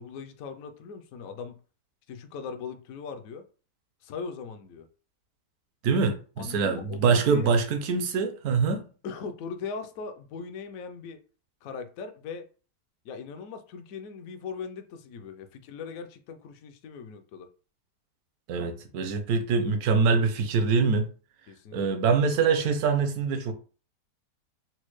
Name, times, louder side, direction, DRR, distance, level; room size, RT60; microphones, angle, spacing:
voice 1, 0.0-1.6 2.1-3.4 4.0-4.9 6.4-7.6 9.0-11.2 11.6-12.5 13.0-17.5 21.5-21.8, left 5 dB, 70° left, 0.8 m, -39 dB
voice 2, 5.8-8.8 18.5-21.1 21.7-23.5, right 5 dB, 70° right, 1.0 m, -24 dB
4.2 x 2.1 x 3.0 m
omnidirectional pair, 1.8 m